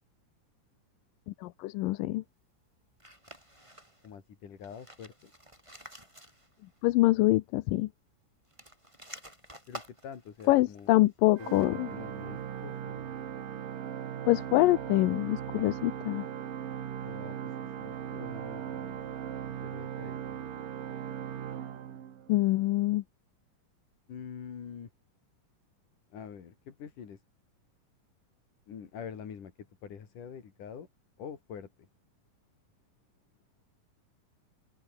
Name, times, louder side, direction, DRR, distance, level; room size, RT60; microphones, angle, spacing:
voice 1, 1.4-2.2 6.8-7.9 10.5-11.9 14.3-16.3 22.3-23.0, left 18 dB, 90° left, 2.5 m, -25 dB
sound 1, 3.0-4.1 4.5-6.8 7.0-7.1 8.4-11.9, right 1 dB, 10° right, 7.8 m, -51 dB
voice 2, 4.0-5.3 9.7-13.2 17.0-19.1 19.4-20.2 24.1-24.9 26.1-27.2 28.7-30.9 31.2-31.9, left 7 dB, 70° left, 4.5 m, -46 dB
Organ, 11.4-22.5, right 9 dB, 80° right, 3.9 m, -39 dB
open air
omnidirectional pair, 3.8 m